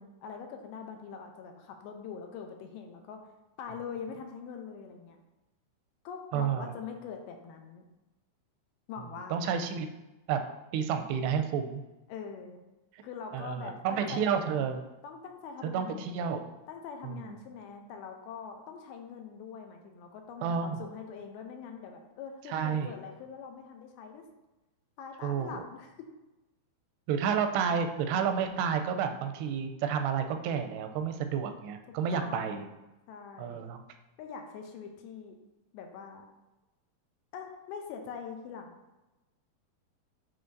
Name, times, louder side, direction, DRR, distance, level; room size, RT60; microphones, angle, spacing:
voice 1, 0.0-3.2 3.6-5.2 6.1-7.8 8.9-9.4 12.1-12.6 13.0-14.5 15.0-16.0 16.7-24.2 25.0-25.9 32.1-32.7 33.1-33.7 34.2-35.4 35.7-36.2 37.3-38.8, left 6 dB, 85° left, 4 dB, 2.4 m, -43 dB
voice 2, 6.3-6.7 9.3-9.9 10.3-10.4 10.7-11.8 12.9-13.0 13.3-14.8 15.6-16.5 17.0-17.3 20.4-20.8 22.5-22.9 25.2-25.6 27.1-32.7 33.4-33.8, right 7 dB, 85° right, 7 dB, 2.6 m, -30 dB
10.0 x 4.0 x 2.6 m, 1.0 s
omnidirectional pair, 4.7 m